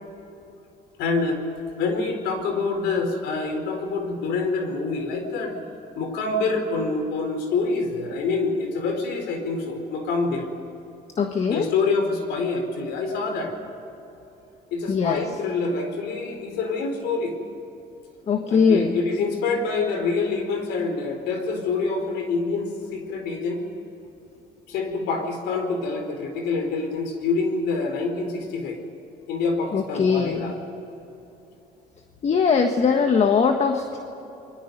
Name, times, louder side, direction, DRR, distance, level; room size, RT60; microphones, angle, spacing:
voice 1, 1.0-1.4 1.8-5.6 5.9-10.5 11.5-13.5 14.7-17.4 18.5-23.6 24.7-28.8 29.3-30.6, left 4 dB, 80° left, 5 dB, 4.1 m, -26 dB
voice 2, 11.2-11.7 14.9-15.2 18.3-19.0 29.7-30.5 32.2-34.0, left 5 dB, 40° left, 5 dB, 1.5 m, -21 dB
29.5 x 22.0 x 5.3 m, 3.0 s
cardioid pair, 110°, 17 cm